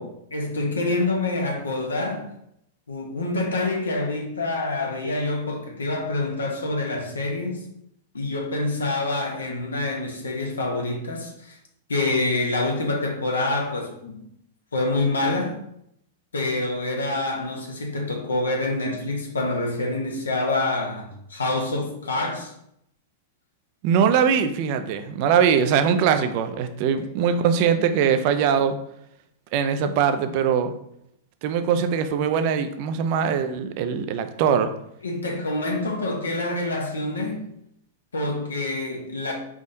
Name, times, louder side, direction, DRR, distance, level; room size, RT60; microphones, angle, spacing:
voice 1, 0.0-2.3 2.9-7.6 8.1-11.6 11.9-14.2 14.7-15.6 16.3-22.5 35.0-37.4 38.1-39.3, left 2 dB, 75° left, 0.9 m, -26 dB
voice 2, 23.8-28.8 29.5-30.7 31.4-34.7, right 7 dB, 45° right, 0.4 m, -21 dB
4.1 x 3.5 x 2.6 m
figure-of-eight pair, 100°, 0 cm